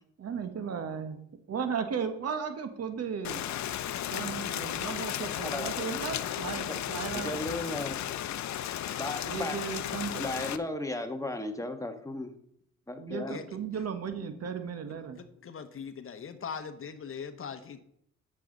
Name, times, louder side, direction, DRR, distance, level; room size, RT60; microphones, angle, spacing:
voice 1, 0.2-1.2 1.5-3.5 4.1-7.4 9.2-10.2 13.0-15.2, right 6 dB, 55° right, 8 dB, 1.4 m, -35 dB
Rain, 3.2-10.6, left 11 dB, 65° left, 0.7 m, -34 dB
voice 2, 5.4-5.7 7.1-8.0 9.0-9.6 10.2-12.3 12.9-13.4, left 2 dB, 10° left, 5 dB, 1.4 m, -35 dB
voice 3, 15.2-17.9, left 6 dB, 45° left, 10 dB, 1.1 m, -41 dB
10.5 x 7.6 x 4.0 m, 0.72 s
cardioid pair, 90°, 30 cm